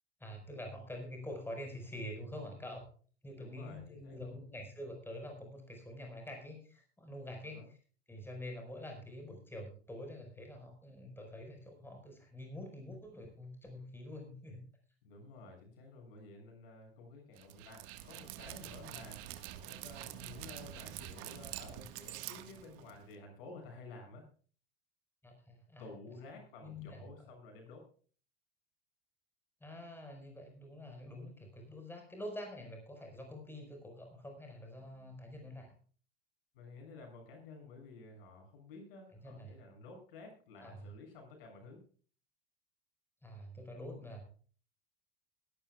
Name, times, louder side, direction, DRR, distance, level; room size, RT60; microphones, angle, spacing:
voice 1, 0.2-2.9 3.2-7.8 8.1-14.6 25.2-25.8 26.6-27.0 29.6-35.7 39.1-39.6 40.6-40.9 43.2-44.2, left 1 dB, 5° left, 3 dB, 5.1 m, -46 dB
voice 2, 3.4-4.4 7.4-7.7 15.0-19.2 19.7-24.3 25.8-27.9 36.5-41.8, left 3 dB, 60° left, 2 dB, 7.2 m, -52 dB
Dog, 17.4-23.2, right 12 dB, 50° right, 1.7 m, -46 dB
22.5 x 12.5 x 2.4 m, 0.42 s
figure-of-eight pair, 80°, 31 cm